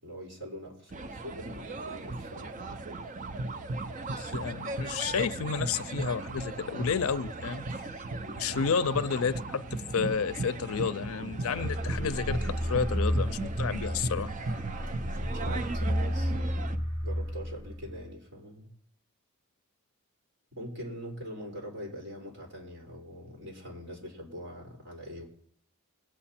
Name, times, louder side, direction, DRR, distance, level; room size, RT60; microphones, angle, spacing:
voice 1, 0.0-2.6 8.5-8.7 14.8-18.7 20.5-25.3, equal, 55° right, 4.3 m, -43 dB
sound 1, 0.9-16.8, right 2 dB, 35° right, 0.5 m, -36 dB
voice 2, 4.2-7.7 8.4-14.3, left 6 dB, 70° left, 0.5 m, -31 dB
sound 2, 11.5-18.1, equal, 20° right, 2.7 m, -32 dB
22.5 x 8.5 x 4.3 m
head